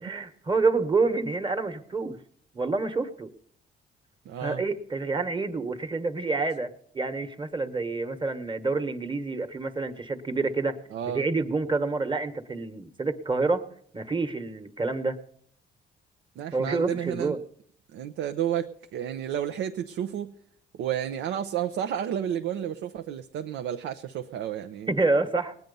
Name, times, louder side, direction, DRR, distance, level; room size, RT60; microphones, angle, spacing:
voice 1, 0.0-2.2 2.5-3.3 4.4-10.8 11.1-13.6 13.9-15.2 16.5-17.4 24.9-25.5, right 3 dB, 25° right, 1.3 m, -28 dB
voice 2, 4.3-4.6 10.9-11.3 16.4-17.3 17.9-20.3 20.7-24.9, right 10 dB, 85° right, 0.7 m, -31 dB
20.0 x 9.2 x 5.4 m
cardioid pair, 90°, 20 cm